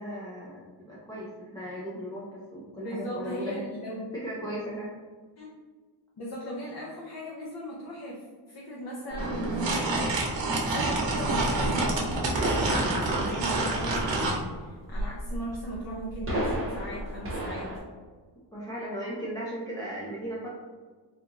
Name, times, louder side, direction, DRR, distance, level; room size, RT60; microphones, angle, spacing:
voice 1, 0.0-3.6 4.1-4.9 18.5-20.5, right 1 dB, 10° left, -6 dB, 0.5 m, -37 dB
voice 2, 2.8-4.0 5.4-5.5 6.2-10.1 10.4-17.7, equal, 55° left, -4 dB, 0.7 m, -37 dB
sound 1, 9.1-17.8, right 1 dB, 30° right, 0.8 m, -34 dB
sound 2, 9.2-14.4, right 2 dB, 70° right, 0.8 m, -28 dB
3.5 x 2.4 x 2.9 m, 1.5 s
wide cardioid pair, 125°, 45 cm